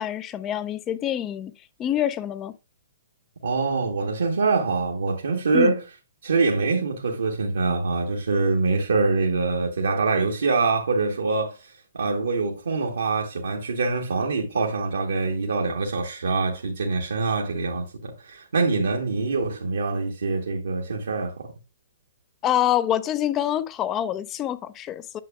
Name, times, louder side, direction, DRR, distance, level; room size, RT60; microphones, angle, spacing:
voice 1, 0.0-1.5 1.8-2.5 5.5-5.7 22.4-25.2, left 11 dB, 25° left, 0.5 m, -26 dB
voice 2, 3.4-5.8 6.2-21.5, right 3 dB, 70° right, 1.2 m, -24 dB
9.1 x 6.7 x 2.3 m
figure-of-eight pair, 120°, 0 cm